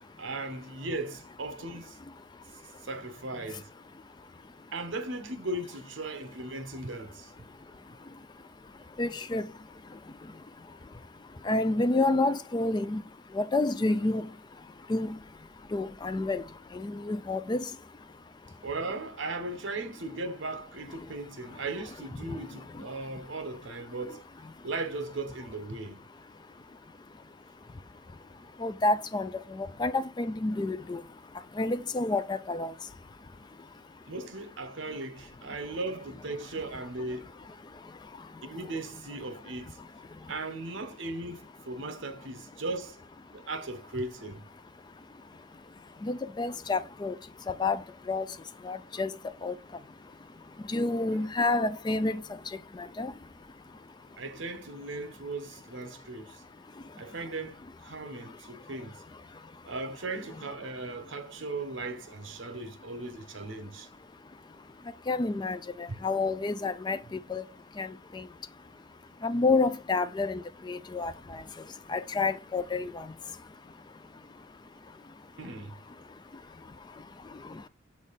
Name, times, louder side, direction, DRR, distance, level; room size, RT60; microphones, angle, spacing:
voice 1, 0.2-2.0 2.8-3.7 4.7-7.3 18.6-24.2 24.6-26.0 34.1-37.3 38.4-39.8 40.3-43.0 43.3-44.5 54.2-56.4 57.0-59.0 59.7-63.9 65.9-66.0 75.4-75.8, right 2 dB, 70° right, 0.9 m, -37 dB
voice 2, 9.0-9.5 11.5-13.0 13.3-14.3 14.9-15.2 15.7-16.4 16.7-17.6 28.6-29.3 29.6-31.0 31.6-32.7 46.0-47.1 47.5-47.8 48.1-48.2 48.6-49.1 49.4-49.5 50.7-52.2 53.0-53.1 65.1-67.4 67.8-67.9 68.1-68.2 69.2-71.4 71.9-73.1, left 3 dB, 20° left, 0.3 m, -29 dB
7.2 x 3.6 x 4.0 m
head